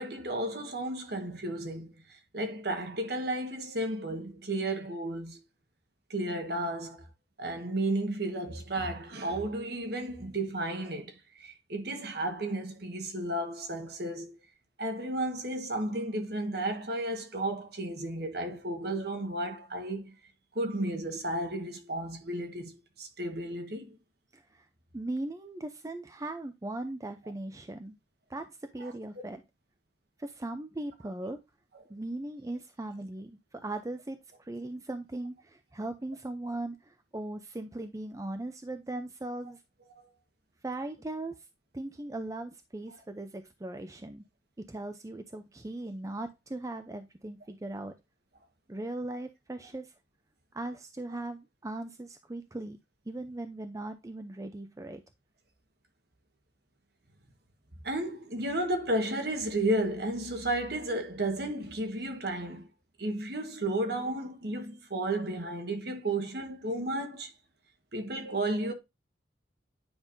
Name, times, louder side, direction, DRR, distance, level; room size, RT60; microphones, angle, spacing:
voice 1, 0.0-5.4 6.1-7.0 7.4-14.4 14.8-20.1 20.5-24.0 28.8-28.9 51.1-51.2 57.8-62.7 63.0-67.3 67.9-68.7, right 1 dB, 55° right, 1.4 m, -33 dB
voice 2, 24.3-24.7 24.9-28.0 28.3-29.4 30.2-31.4 31.9-39.6 40.6-41.5 41.7-44.2 44.6-47.9 48.7-49.9 50.5-52.8 53.1-55.0, right 2 dB, 15° right, 0.5 m, -39 dB
9.5 x 5.4 x 2.6 m
head